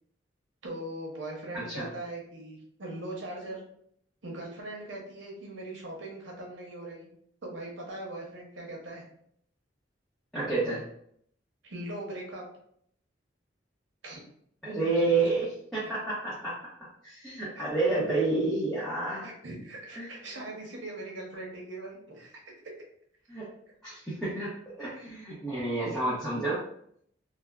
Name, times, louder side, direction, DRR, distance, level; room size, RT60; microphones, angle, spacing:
voice 1, 0.6-3.6 4.2-7.1 7.4-9.0 11.6-12.4 14.0-14.2 15.0-15.3 17.6-17.7 17.9-18.2 19.2-22.4 25.9-26.0, right 1 dB, 85° right, -1 dB, 0.8 m, -40 dB
voice 2, 1.5-1.9 10.3-10.8 14.6-16.6 17.0-19.3 20.0-20.1 23.3-23.5 23.8-26.6, right 3 dB, 5° left, -11 dB, 0.7 m, -29 dB
3.3 x 2.0 x 2.3 m, 0.68 s
head